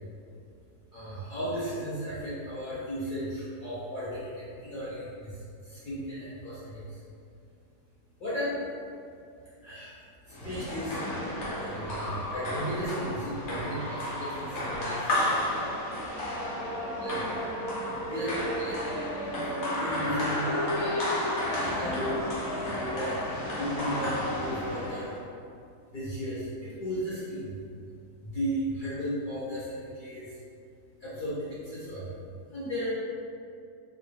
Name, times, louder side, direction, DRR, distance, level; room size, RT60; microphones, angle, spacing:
voice 1, 0.9-7.0 8.2-8.6 9.6-10.0 10.2-11.0 11.6-15.1 16.6-16.7 17.0-17.5 18.0-18.8 19.7-20.5 21.8-23.2 23.5-25.1 25.9-27.6 28.2-30.4 31.0-32.1 32.5-32.9, equal, 70° left, -11 dB, 0.4 m, -35 dB
sound 1, 10.3-25.2, left 1 dB, 50° left, 1.0 m, -32 dB
3.9 x 2.3 x 3.3 m, 2.4 s
omnidirectional pair, 1.8 m